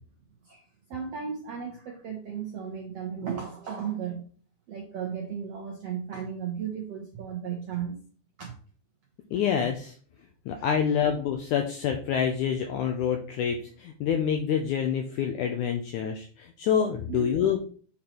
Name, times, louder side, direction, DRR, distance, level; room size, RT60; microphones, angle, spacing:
voice 1, 0.4-4.3 4.7-7.9 8.4-8.5 10.6-10.7 17.1-17.3, right 7 dB, 75° right, 1 dB, 1.4 m, -35 dB
voice 2, 9.3-10.0 10.5-17.6, left 8 dB, 80° left, 4 dB, 1.8 m, -27 dB
8.4 x 4.3 x 4.4 m, 0.43 s
omnidirectional pair, 4.3 m